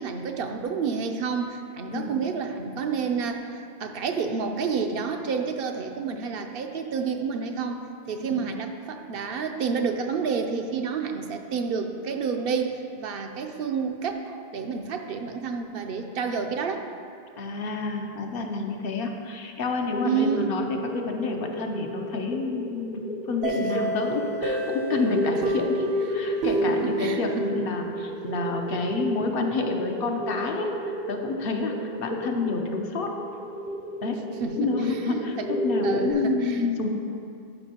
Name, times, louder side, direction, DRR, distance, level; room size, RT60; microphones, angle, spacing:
voice 1, 0.0-16.9 20.0-20.5 23.6-23.7 26.4-27.5 34.4-35.5 35.8-36.7, right 5 dB, 70° right, 5 dB, 0.7 m, -30 dB
voice 2, 17.4-33.2 34.0-34.2 34.6-36.9, left 4 dB, 65° left, 3 dB, 0.9 m, -29 dB
sound 1, 19.9-36.1, right 1 dB, 10° right, 0.5 m, -32 dB
sound 2, 23.4-28.1, right 1 dB, 90° right, 1.1 m, -30 dB
12.5 x 5.2 x 2.8 m, 2.4 s
omnidirectional pair, 1.0 m